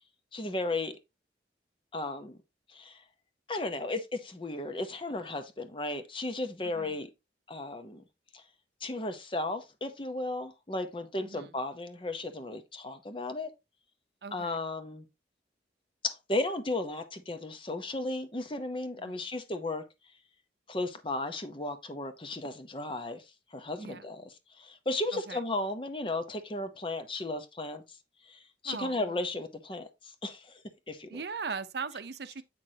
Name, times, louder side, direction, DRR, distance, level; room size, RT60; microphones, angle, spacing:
voice 1, 0.3-0.9 1.9-2.4 2.7-3.0 3.5-7.1 7.5-8.0 8.3-8.4 8.8-13.5 14.3-15.0 16.0-19.8 20.7-23.2 23.5-27.8 28.3-29.9 30.2-30.6 30.9-31.2, left 2 dB, 30° left, 0.8 m, -35 dB
voice 2, 14.2-14.6 19.0-19.3 23.8-24.0 25.1-25.4 28.6-29.2 31.1-32.4, right 5 dB, 65° right, 0.6 m, -39 dB
7.6 x 6.0 x 2.8 m
head